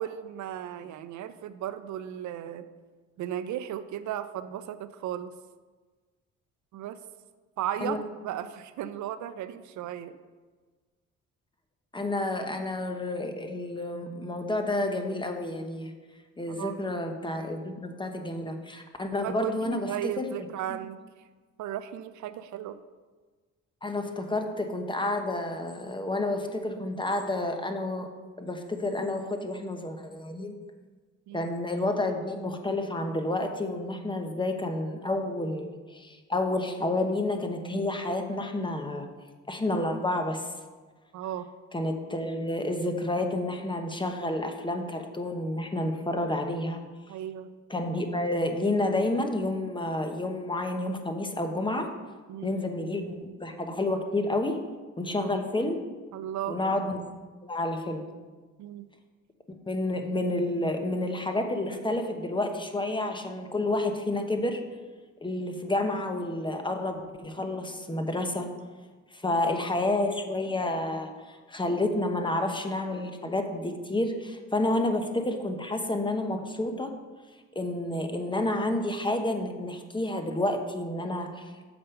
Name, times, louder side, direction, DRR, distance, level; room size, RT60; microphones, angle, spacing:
voice 1, 0.0-2.7 3.2-5.3 6.7-7.0 7.6-10.2 16.5-16.8 19.2-21.0 21.6-22.8 31.3-31.5 41.1-41.5 47.1-47.5 52.3-52.5 55.2-55.3 56.1-56.6 58.6-58.9, right 11 dB, 70° right, 12 dB, 0.5 m, -35 dB
voice 2, 11.9-15.9 16.4-20.3 20.7-20.8 23.8-28.1 28.4-30.6 31.3-39.1 39.5-40.5 41.7-46.8 47.7-51.9 52.4-54.6 55.0-55.8 56.5-57.0 57.4-58.1 59.7-64.7 65.2-68.5 69.1-76.9 77.5-81.5, left 2 dB, 15° left, 6 dB, 0.9 m, -30 dB
6.9 x 5.3 x 5.6 m, 1.4 s
cardioid pair, 90°, 30 cm